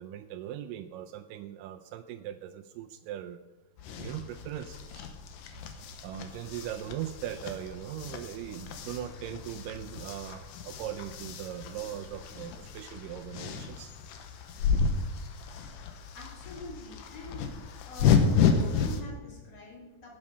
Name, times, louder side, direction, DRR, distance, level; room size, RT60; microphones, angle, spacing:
voice 1, 0.0-3.4 3.9-5.1 6.0-13.9, right 11 dB, 85° right, 7 dB, 2.2 m, -40 dB
sound 1, 3.8-19.0, left 6 dB, 85° left, 2.7 m, -31 dB
voice 2, 15.8-17.5 17.8-20.1, left 2 dB, 35° left, -3 dB, 3.5 m, -45 dB
17.5 x 7.2 x 5.5 m, 1.2 s
omnidirectional pair, 3.8 m